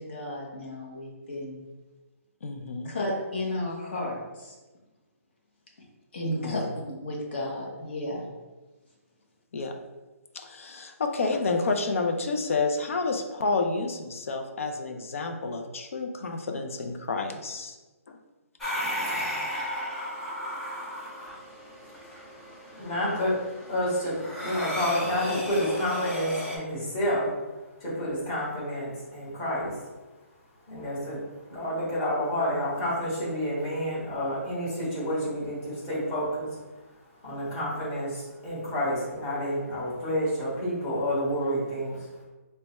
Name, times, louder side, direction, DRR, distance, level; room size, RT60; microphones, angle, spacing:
voice 1, 0.1-1.6 2.8-4.2 6.1-6.6 7.0-8.2, left 1 dB, 45° left, -2 dB, 1.0 m, -32 dB
voice 2, 2.4-2.9 6.2-6.7 9.5-9.7 10.3-17.8 18.1-18.2, left 3 dB, 60° left, 5 dB, 0.5 m, -30 dB
sound 1, 18.6-26.6, equal, 5° left, 0.3 m, -34 dB
voice 3, 22.8-23.3 23.7-24.1 24.4-27.3 27.8-29.7 30.7-31.2 31.5-36.5 37.2-42.0, equal, 20° left, -9 dB, 1.4 m, -29 dB
3.3 x 2.2 x 4.0 m, 1.2 s
hypercardioid pair, 175°, 8 cm